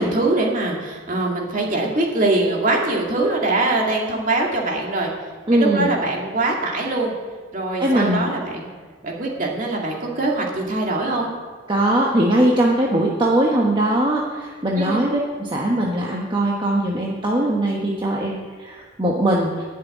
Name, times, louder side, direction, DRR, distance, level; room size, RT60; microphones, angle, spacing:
voice 1, 0.0-5.1 5.5-7.1 7.5-8.7 9.0-11.3 14.8-15.0, right 2 dB, 40° right, -1 dB, 2.3 m, -22 dB
voice 2, 5.5-5.9 7.8-8.3 11.7-19.6, right 1 dB, 25° right, -3 dB, 1.2 m, -20 dB
12.0 x 6.7 x 9.2 m, 1.5 s
head